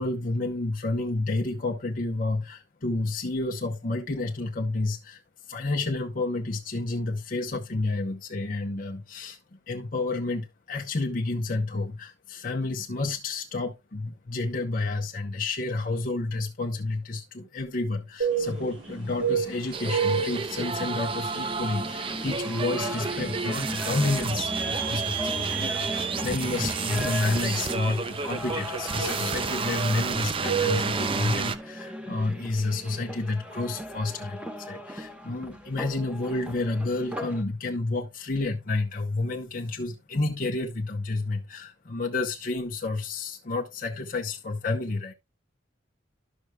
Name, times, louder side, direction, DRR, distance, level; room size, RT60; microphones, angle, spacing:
voice 1, 0.0-5.2 5.5-45.1, left 2 dB, 45° left, 0.8 m, -30 dB
sound 1, 18.2-31.0, right 6 dB, 80° right, 4.0 m, -34 dB
sound 2, 18.6-37.4, equal, 5° right, 1.0 m, -38 dB
sound 3, 19.7-31.5, right 5 dB, 25° right, 0.4 m, -31 dB
12.0 x 6.3 x 2.3 m
head